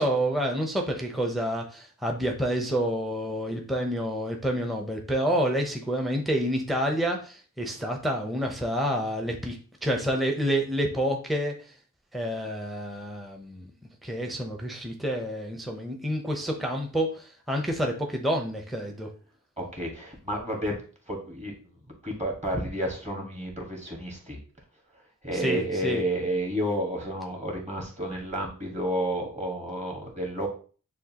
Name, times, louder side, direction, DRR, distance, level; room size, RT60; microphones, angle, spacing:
voice 1, 0.0-11.5 12.1-13.7 14.0-19.1 25.3-26.0, equal, ahead, 2 dB, 0.7 m, -28 dB
voice 2, 19.6-20.8 21.1-21.5 22.0-24.4 25.2-30.5, equal, 20° right, 0 dB, 1.5 m, -31 dB
6.3 x 2.4 x 2.8 m, 0.39 s
wide cardioid pair, 60°, 32 cm